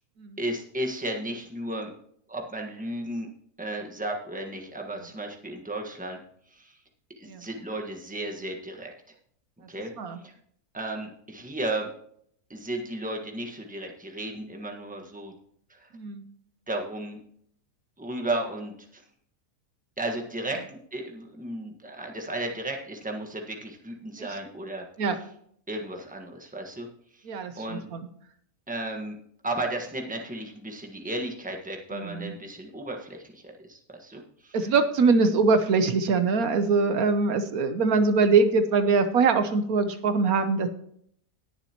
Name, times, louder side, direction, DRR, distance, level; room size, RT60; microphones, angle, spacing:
voice 1, 0.4-1.9 2.3-3.3 3.6-6.2 6.5-6.7 7.2-8.9 9.7-9.9 10.2-10.3 10.7-11.9 12.5-15.3 15.7-15.9 16.7-17.2 18.0-19.0 20.0-24.8 25.7-26.9 27.6-27.8 28.7-29.2 29.4-34.6, right 1 dB, 5° right, 2 dB, 1.4 m, -34 dB
voice 2, 27.2-28.1 31.9-32.3 34.5-40.7, right 4 dB, 75° right, 9 dB, 1.3 m, -23 dB
20.0 x 7.0 x 3.0 m, 0.65 s
omnidirectional pair, 1.6 m